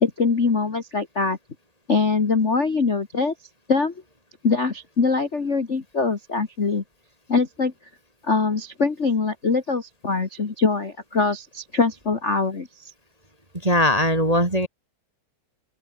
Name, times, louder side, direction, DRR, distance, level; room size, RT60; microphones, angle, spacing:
voice 1, 0.0-1.4 1.9-3.3 3.7-3.9 4.4-6.8 7.3-7.7 8.2-12.9, left 4 dB, 35° left, 1.2 m, -23 dB
voice 2, 13.5-14.7, equal, 15° right, 1.6 m, -20 dB
open air
omnidirectional pair, 3.9 m